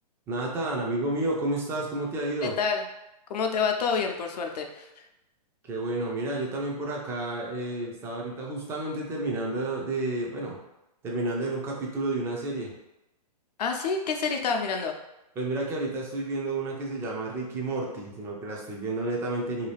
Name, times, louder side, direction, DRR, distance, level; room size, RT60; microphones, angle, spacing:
voice 1, 0.3-2.6 5.7-10.6 11.0-12.7 15.4-19.7, right 2 dB, 10° right, -1 dB, 0.4 m, -31 dB
voice 2, 2.4-2.8 3.3-5.0 13.6-14.9, left 5 dB, 75° left, 4 dB, 0.6 m, -28 dB
2.7 x 2.3 x 3.3 m, 0.91 s
hypercardioid pair, 140°, 21 cm